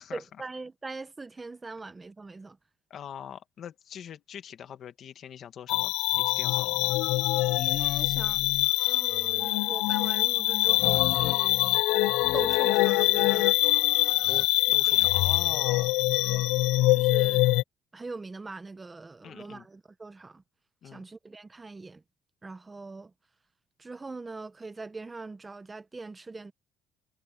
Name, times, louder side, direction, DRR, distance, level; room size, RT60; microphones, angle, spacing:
voice 1, 0.1-2.6 7.6-8.5 8.9-11.6 12.3-13.6 14.9-15.1 16.2-16.5 16.9-17.5 17.9-20.4 20.8-22.0 22.4-23.1 23.8-26.5, right 3 dB, 15° right, 0.8 m, -41 dB
voice 2, 2.9-7.0 14.3-16.0 19.2-19.7 20.8-21.1, left 9 dB, 40° left, 1.8 m, -43 dB
sound 1, 5.7-17.6, left 19 dB, 90° left, 0.4 m, -24 dB
cardioid pair, 160°, 0 cm